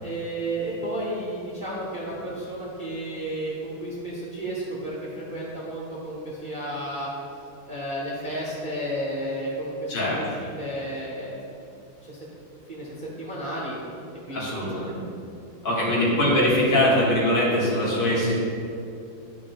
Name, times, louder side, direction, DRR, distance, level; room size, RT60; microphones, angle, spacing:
voice 1, 0.0-7.1 7.7-11.4 12.0-12.2 12.7-13.7 14.3-14.8 15.7-16.2, right 1 dB, 35° right, -6 dB, 0.9 m, -32 dB
voice 2, 14.3-15.0 15.6-18.3, left 1 dB, 65° left, -6 dB, 2.2 m, -22 dB
10.5 x 6.0 x 2.3 m, 2.6 s
omnidirectional pair, 2.2 m